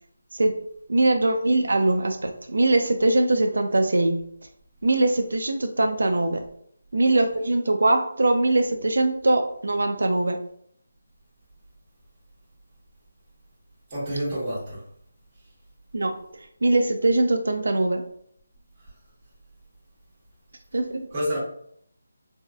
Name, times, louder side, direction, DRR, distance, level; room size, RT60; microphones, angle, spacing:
voice 1, 0.9-4.2 4.8-6.4 6.9-10.4 15.9-16.1 16.6-18.0 20.7-21.1, right 2 dB, 75° right, 5 dB, 0.3 m, -22 dB
voice 2, 13.9-14.8 21.1-21.4, equal, 15° right, -9 dB, 1.2 m, -28 dB
3.4 x 2.4 x 2.3 m, 0.67 s
figure-of-eight pair, 175°, 0 cm